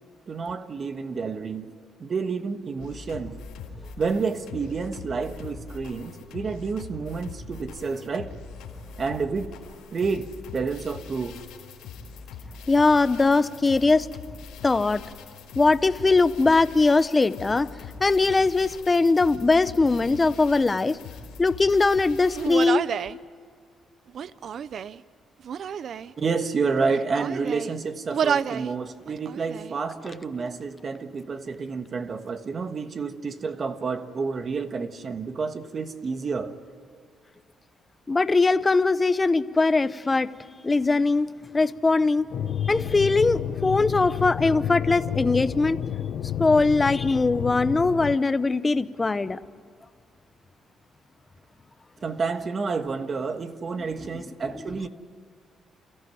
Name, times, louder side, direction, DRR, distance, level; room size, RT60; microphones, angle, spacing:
voice 1, 0.3-1.7 2.0-3.4 4.0-8.3 9.0-9.5 9.9-11.4 26.2-36.6 52.0-54.9, right 4 dB, 45° right, 1.4 m, -29 dB
sound 1, 2.8-22.7, left 5 dB, 90° left, 4.1 m, -42 dB
voice 2, 12.7-14.1 14.6-15.0 15.6-17.7 18.0-21.0 21.4-22.8 38.1-40.3 40.6-41.3 41.5-42.3 42.6-45.8 46.4-49.4, left 3 dB, 25° left, 0.8 m, -21 dB
Human voice, 22.4-23.2 24.1-25.0 25.4-26.1 26.8-27.7 28.1-28.7 29.1-29.7, right 7 dB, 60° right, 0.5 m, -29 dB
sound 2, 42.3-48.2, left 9 dB, 65° left, 0.7 m, -30 dB
28.5 x 14.5 x 9.5 m
cardioid pair, 90°, 0 cm